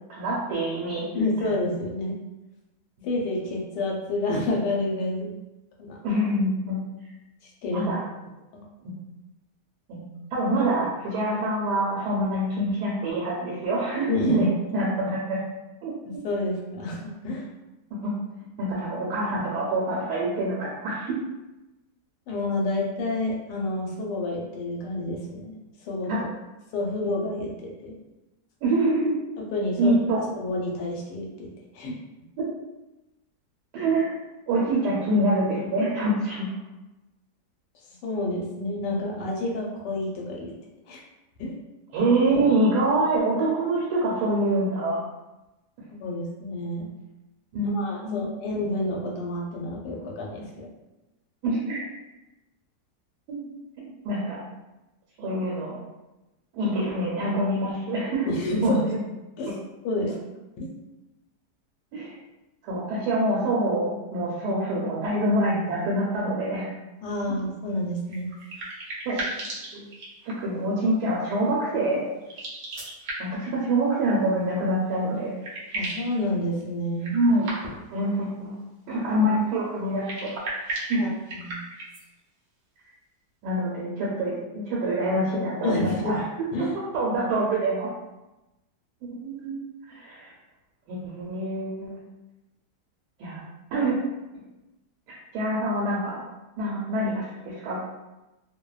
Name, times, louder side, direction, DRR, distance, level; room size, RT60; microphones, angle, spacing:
voice 1, 0.1-1.0 1.4-1.5 3.0-3.1 6.0-6.8 7.7-8.0 9.9-15.4 15.8-15.9 17.9-18.1 18.6-21.1 26.1-26.2 28.6-29.1 29.8-30.2 32.4-32.5 33.7-34.1 34.5-36.5 41.9-45.0 47.5-48.3 51.4-51.8 53.3-53.5 54.0-54.4 55.2-55.8 56.5-58.3 58.6-59.0 61.9-62.1 62.6-66.7 69.1-69.5 69.7-69.8 70.3-72.0 73.2-75.3 77.1-77.5 77.9-78.5 78.9-80.3 80.6-81.0 83.4-86.2 86.9-87.9 89.1-89.5 89.9-90.3 90.9-92.0 93.2-93.4 93.7-94.0 95.3-96.2 96.6-97.9, right 1 dB, 80° right, -5 dB, 1.2 m, -25 dB
voice 2, 1.1-2.1 3.0-5.4 5.9-6.0 7.4-7.9 8.5-8.6 14.1-14.5 16.2-17.5 22.3-26.1 26.7-27.9 29.5-30.0 30.4-31.5 31.7-32.0 38.0-40.5 40.9-41.0 41.4-41.6 46.0-46.9 47.6-50.7 58.3-58.8 59.4-59.5 59.8-60.1 60.6-60.7 67.0-68.3 75.7-77.2 81.0-81.6 85.6-86.2 86.5-86.8, left 2 dB, 85° left, -1 dB, 1.2 m, -29 dB
sound 1, 68.1-70.6 72.2-73.5 74.8-74.9 75.2-76.1 77.0-77.9 79.9-82.0, right 2 dB, 60° right, 0.6 m, -35 dB
2.8 x 2.1 x 2.2 m, 1.0 s
omnidirectional pair, 1.8 m